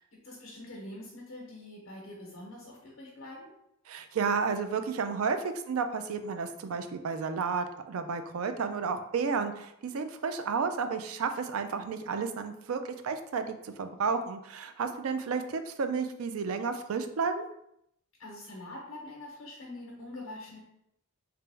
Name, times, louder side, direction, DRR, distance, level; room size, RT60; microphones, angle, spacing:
voice 1, 0.0-3.5 18.2-20.6, left 1 dB, 75° left, -3 dB, 0.9 m, -44 dB
voice 2, 3.9-17.4, right 5 dB, 85° right, 8 dB, 0.4 m, -32 dB
3.3 x 2.9 x 3.3 m, 0.76 s
head